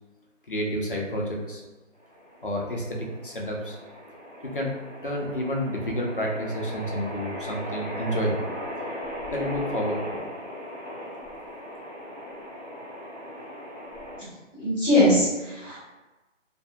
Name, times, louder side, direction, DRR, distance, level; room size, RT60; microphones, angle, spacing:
voice 1, 0.5-1.6 2.4-3.8 4.4-4.8 5.0-8.5 9.3-10.2, equal, 45° left, -1 dB, 0.5 m, -29 dB
sound 1, 2.0-14.2, equal, 35° right, 0.5 m, -38 dB
voice 2, 14.6-15.8, left 1 dB, 5° left, -13 dB, 1.3 m, -21 dB
2.6 x 2.5 x 2.2 m, 1.2 s
hypercardioid pair, 175°, 38 cm